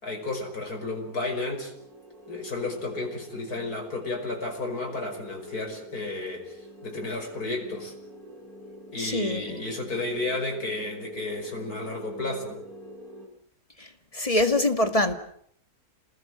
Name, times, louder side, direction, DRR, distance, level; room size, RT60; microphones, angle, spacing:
voice 1, 0.0-1.7 2.3-7.9 8.9-12.6, left 2 dB, 80° left, 2 dB, 6.1 m, -32 dB
sound 1, 0.5-13.3, equal, 70° right, 8.6 m, -46 dB
voice 2, 9.0-9.6 13.8-13.9 14.1-15.2, left 1 dB, 25° left, 7 dB, 2.0 m, -24 dB
27.5 x 20.0 x 7.9 m, 0.66 s
omnidirectional pair, 1.6 m